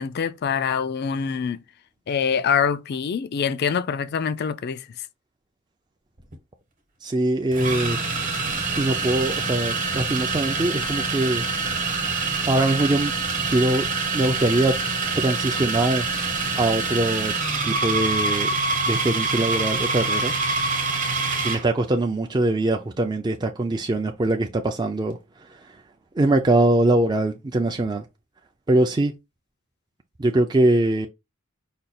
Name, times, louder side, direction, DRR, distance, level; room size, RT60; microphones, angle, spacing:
voice 1, 0.0-1.6 2.1-4.8, left 6 dB, 50° left, 0.4 m, -25 dB
sound 1, 6.2-6.4 7.5-21.7, right 3 dB, 40° right, 1.1 m, -25 dB
voice 2, 7.0-8.0 8.8-11.4 12.5-13.1 13.5-13.9 14.1-14.8 15.2-16.1 16.5-17.3 17.6-18.5 18.8-20.3 21.4-25.2 26.2-28.0 28.7-29.1 30.2-31.1, right 2 dB, 20° right, 0.4 m, -22 dB
5.1 x 2.3 x 4.2 m
head